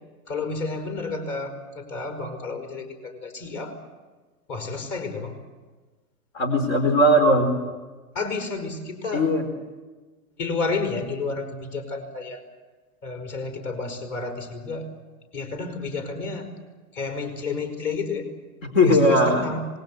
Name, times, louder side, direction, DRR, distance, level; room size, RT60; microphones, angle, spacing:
voice 1, 0.3-3.8 4.5-5.3 8.1-9.3 10.4-12.4 13.0-14.9 15.3-16.5 16.9-18.3 18.8-19.7, left 4 dB, 35° left, 6 dB, 5.3 m, -31 dB
voice 2, 6.3-7.5 9.1-9.4 18.6-19.4, equal, 60° left, 7 dB, 4.6 m, -18 dB
26.5 x 21.0 x 8.0 m, 1.3 s
hypercardioid pair, 120°, 45 cm